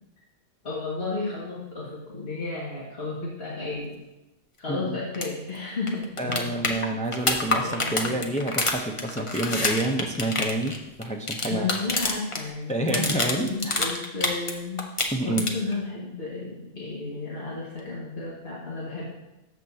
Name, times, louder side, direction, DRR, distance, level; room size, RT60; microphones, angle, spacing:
voice 1, 0.6-3.9 4.6-6.8 7.5-8.3 11.5-14.8 15.2-19.0, left 3 dB, 55° left, -6 dB, 2.1 m, -33 dB
voice 2, 4.7-5.0 6.2-10.7 11.0-11.7 12.7-13.8 15.1-15.4, right 1 dB, 10° left, 2 dB, 0.4 m, -28 dB
sound 1, 5.1-5.3 5.5-5.6 5.9-12.4 12.7-14.5 14.8-15.7 17.8-17.9, left 2 dB, 30° left, 0.8 m, -27 dB
13.5 x 7.5 x 2.8 m, 0.97 s
omnidirectional pair, 1.3 m